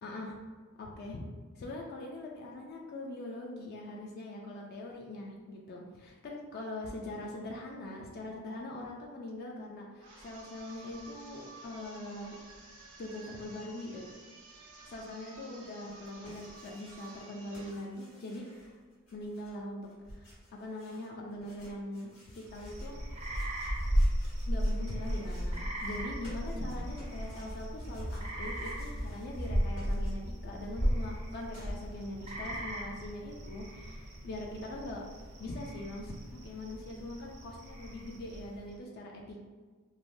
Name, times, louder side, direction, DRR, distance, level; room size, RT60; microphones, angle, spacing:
voice 1, 0.0-0.4 0.8-1.3 1.6-12.4 13.0-14.1 14.8-18.7 19.1-23.0 24.5-35.0 35.4-39.4, left 1 dB, 45° left, 0 dB, 0.3 m, -42 dB
sound 1, 10.0-17.8, right 2 dB, 70° right, 0.7 m, -53 dB
sound 2, 15.9-17.3 17.5-30.5 30.8-32.6, equal, 75° left, 1.4 m, -56 dB
sound 3, 22.5-38.7, equal, 30° right, 0.4 m, -35 dB
3.2 x 2.1 x 2.5 m, 1.4 s
head